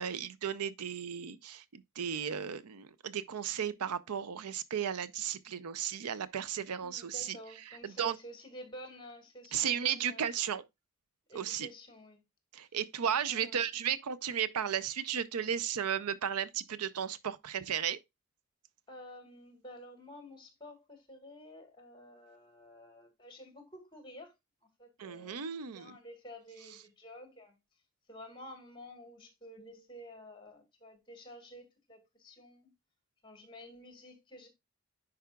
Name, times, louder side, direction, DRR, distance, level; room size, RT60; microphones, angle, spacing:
voice 1, 0.0-7.4 7.7-8.1 9.5-10.6 11.3-11.7 12.5-18.0 25.0-25.9, right 8 dB, 85° right, 0.5 m, -34 dB
voice 2, 6.8-10.3 11.3-12.2 13.3-13.6 18.9-24.3 24.8-25.5 25.7-27.6 28.1-32.7 33.2-34.5, equal, 20° left, 1.8 m, -50 dB
10.0 x 4.8 x 2.3 m
head